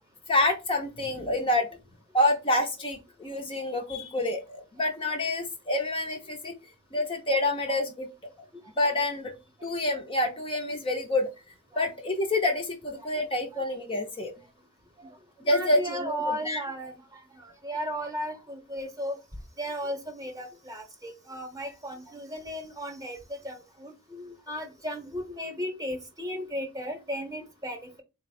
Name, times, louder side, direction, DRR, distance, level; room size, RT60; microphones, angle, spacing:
voice 1, 0.3-1.7 2.1-6.5 6.9-8.1 8.4-8.5 8.8-9.3 9.6-11.3 11.8-14.3 15.4-16.6, left 1 dB, 25° left, 0.5 m, -27 dB
voice 2, 15.5-19.2 19.6-28.0, equal, 15° right, 0.8 m, -35 dB
4.1 x 2.0 x 4.1 m
head